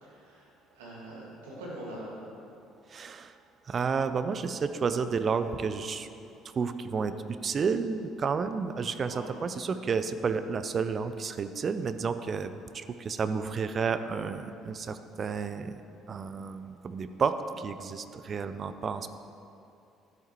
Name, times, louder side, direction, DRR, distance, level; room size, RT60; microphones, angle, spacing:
voice 1, 0.0-2.2 9.1-9.3, right 1 dB, 75° right, -5 dB, 2.1 m, -43 dB
voice 2, 2.9-3.3 3.7-6.1 6.6-15.8 16.1-19.1, right 5 dB, 40° right, 11 dB, 0.5 m, -31 dB
12.5 x 8.1 x 3.2 m, 2.6 s
figure-of-eight pair, 55°, 0 cm